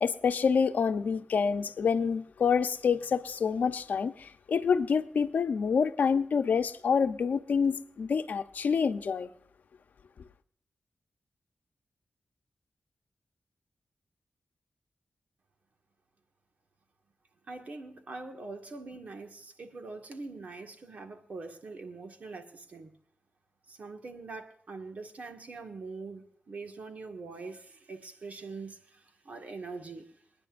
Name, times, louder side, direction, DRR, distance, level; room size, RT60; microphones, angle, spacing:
voice 1, 0.0-9.3, left 6 dB, 80° left, 0.7 m, -27 dB
voice 2, 17.5-22.9 23.7-30.1, right 3 dB, 65° right, 1.8 m, -43 dB
28.0 x 9.9 x 2.6 m
wide cardioid pair, 80°, 3 cm